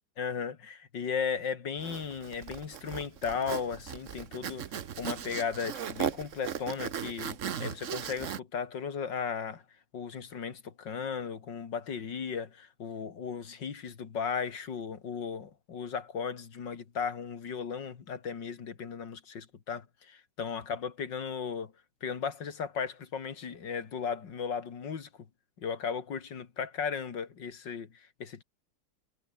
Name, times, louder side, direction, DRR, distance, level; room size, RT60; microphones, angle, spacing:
voice 1, 0.2-9.6 9.9-21.7 22.0-25.1 25.6-28.4, left 6 dB, 55° left, 2.5 m, -36 dB
Zipper (clothing), 1.8-8.4, right 8 dB, 50° right, 1.0 m, -37 dB
omnidirectional pair, 2.4 m